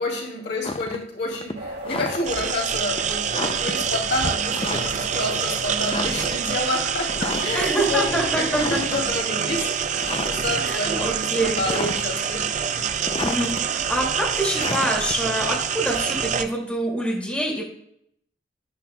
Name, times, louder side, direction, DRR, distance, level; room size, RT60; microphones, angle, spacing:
voice 1, 0.0-9.7 10.3-13.1, left 2 dB, 70° left, -1 dB, 2.6 m, -29 dB
sound 1, 0.6-1.0 1.3-2.5 3.0-3.1 3.3-3.8 4.5-5.1 5.4-5.5 5.9-6.5 7.1-7.7 8.1-9.0 9.5-9.6 10.0-10.6 10.9-12.3 12.6-13.6 14.5-16.3, left 3 dB, 30° left, 0.4 m, -31 dB
sound 2, 1.5-13.1, right 1 dB, 60° right, 2.2 m, -40 dB
sound 3, 2.2-16.4, right 7 dB, 45° right, 0.5 m, -26 dB
voice 2, 7.5-8.8 10.6-11.9 12.2-12.3 13.2-17.6, right 1 dB, 10° left, -3 dB, 2.3 m, -26 dB
11.5 x 9.9 x 2.3 m, 0.72 s
head